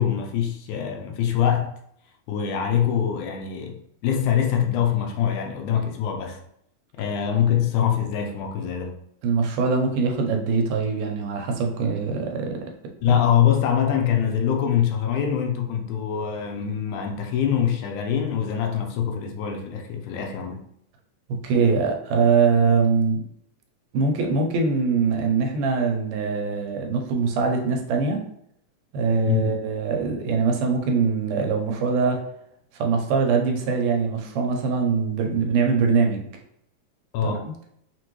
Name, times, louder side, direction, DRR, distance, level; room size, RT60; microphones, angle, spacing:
voice 1, 0.0-1.7 2.3-3.8 4.0-6.4 7.0-9.0 13.0-20.7 29.2-29.5 37.1-37.5, left 9 dB, 80° left, 2.0 m, -24 dB
voice 2, 9.2-12.7 13.1-13.2 21.3-23.2 23.9-28.2 28.9-32.2 32.7-36.3 37.2-37.5, right 5 dB, 85° right, 2.2 m, -23 dB
5.7 x 2.5 x 3.0 m
omnidirectional pair, 3.6 m